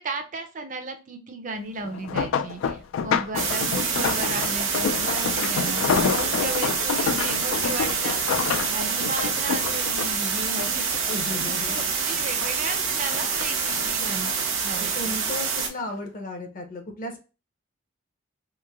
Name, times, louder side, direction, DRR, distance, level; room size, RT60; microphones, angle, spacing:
voice 1, 0.0-5.8 6.1-14.3 14.6-15.2, right 3 dB, 40° right, 5 dB, 0.5 m, -35 dB
sound 1, 1.8-11.4 11.8-12.7 13.1-14.5 15.2-15.5 15.9-16.0, left 6 dB, 75° left, 0.3 m, -28 dB
sound 2, 3.4-15.7, right 5 dB, 80° right, 0.8 m, -26 dB
voice 2, 11.1-11.8 14.8-17.2, left 1 dB, 40° left, 4 dB, 0.6 m, -34 dB
3.1 x 2.5 x 2.3 m, 0.32 s
head